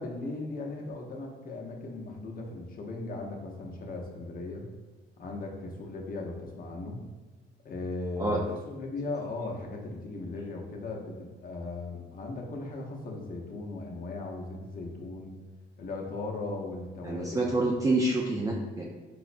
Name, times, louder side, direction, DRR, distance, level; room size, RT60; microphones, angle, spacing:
voice 1, 0.0-4.7 5.2-7.0 7.6-15.4 15.8-17.5, left 2 dB, 45° left, 0 dB, 0.6 m, -37 dB
voice 2, 17.0-18.8, right 2 dB, 15° right, -2 dB, 0.3 m, -27 dB
4.7 x 2.0 x 2.5 m, 1.2 s
cardioid pair, 90°, 20 cm